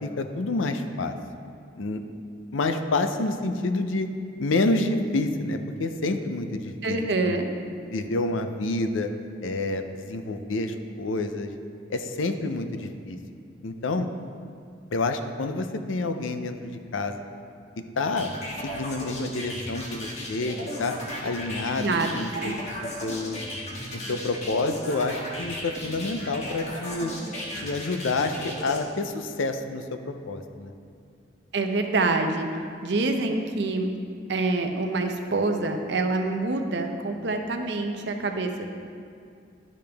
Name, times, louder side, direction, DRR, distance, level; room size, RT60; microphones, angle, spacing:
voice 1, 0.0-1.1 1.8-2.0 2.5-4.1 4.4-7.4 7.9-9.1 9.4-11.5 11.9-13.2 13.6-14.1 14.9-17.2 18.0-18.3 18.6-21.0 21.2-22.6 23.0-23.4 23.9-27.1 27.5-30.7, left 2 dB, 85° left, 7 dB, 0.5 m, -28 dB
voice 2, 6.8-7.5 21.8-22.5 31.5-32.5 32.8-33.9 34.3-38.7, right 3 dB, 60° right, 4 dB, 0.6 m, -26 dB
sound 1, 18.2-28.8, left 1 dB, 35° left, 1.3 m, -35 dB
12.0 x 5.1 x 3.4 m, 2.4 s
head